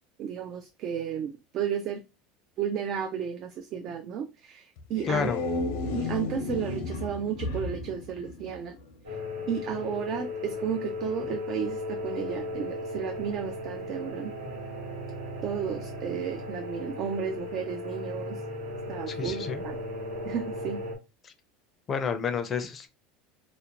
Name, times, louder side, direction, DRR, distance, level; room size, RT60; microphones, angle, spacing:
voice 1, 0.2-2.0 2.6-5.3 5.9-8.8 9.5-14.3 15.4-18.4 18.9-19.8 20.3-20.8, right 8 dB, 45° right, 0.3 m, -33 dB
sound 1, 4.8-9.0, left 2 dB, 80° left, 0.6 m, -33 dB
voice 2, 5.1-5.4 19.1-19.6 21.2-21.3 21.9-22.9, left 6 dB, 30° left, 0.4 m, -30 dB
sound 2, 9.0-20.9, left 1 dB, 85° right, 0.9 m, -36 dB
2.5 x 2.0 x 2.8 m
supercardioid pair, 130°, 0 cm